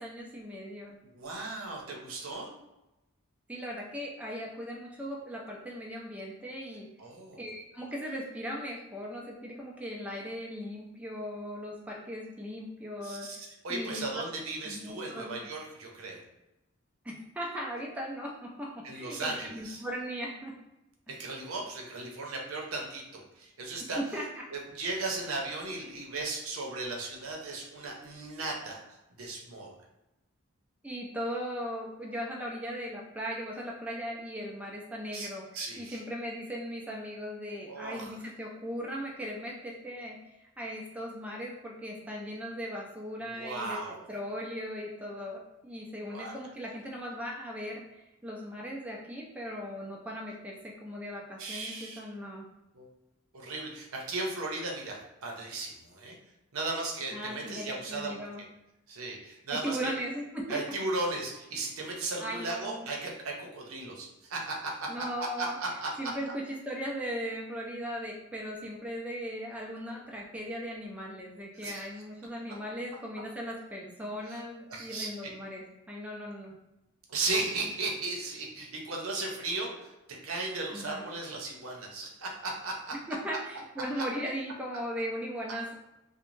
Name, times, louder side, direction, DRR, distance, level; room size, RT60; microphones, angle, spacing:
voice 1, 0.0-1.0 3.5-6.9 7.4-13.3 13.7-14.2 14.6-15.5 17.0-20.5 21.1-21.2 24.0-24.5 30.8-35.5 35.8-43.8 44.1-52.5 57.1-58.4 59.5-60.6 62.2-62.9 64.9-65.6 66.0-76.5 80.7-81.0 82.9-85.7, equal, 5° right, -2 dB, 0.4 m, -38 dB
voice 2, 1.1-2.5 7.0-7.4 13.0-16.2 18.8-19.8 21.1-24.0 24.5-29.7 35.1-35.3 35.5-36.0 37.7-38.2 43.2-44.0 46.1-46.3 51.4-52.0 52.7-52.9 53.3-56.2 56.5-58.1 58.9-59.9 60.5-64.9 65.2-65.9 71.5-71.9 74.3-74.4 74.7-75.1 77.1-82.9 83.3-83.4 84.0-84.1, right 3 dB, 90° right, -1 dB, 0.6 m, -36 dB
2.5 x 2.1 x 3.0 m, 0.93 s
head